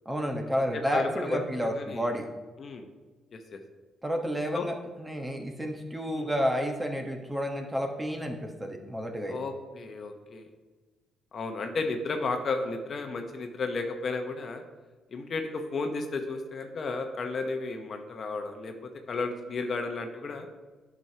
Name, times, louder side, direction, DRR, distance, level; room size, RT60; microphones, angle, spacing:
voice 1, 0.0-2.3 4.0-9.4, equal, 15° right, 2 dB, 1.1 m, -30 dB
voice 2, 0.7-2.1 2.6-2.9 3.3-3.6 4.5-4.7 6.1-6.3 9.3-10.5 11.3-14.6 15.1-20.5, left 3 dB, 50° left, 5 dB, 0.9 m, -33 dB
10.5 x 6.1 x 2.9 m, 1.3 s
cardioid pair, 90°, 0 cm